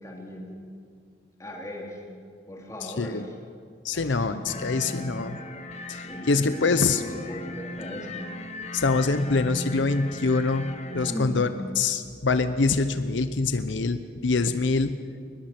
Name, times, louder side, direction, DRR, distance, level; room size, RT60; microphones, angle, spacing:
voice 1, 0.0-0.5 1.4-2.0 2.5-3.3 3.9-5.1 6.0-8.1 11.0-11.4, equal, 15° left, -1 dB, 3.1 m, -38 dB
voice 2, 2.8-3.2 3.8-5.4 5.9-7.0 8.7-11.5 11.8-15.0, left 3 dB, 80° left, 11 dB, 0.7 m, -25 dB
sound 1, 4.5-11.1, left 1 dB, 35° left, 1.3 m, -37 dB
22.5 x 20.5 x 6.0 m, 2.1 s
head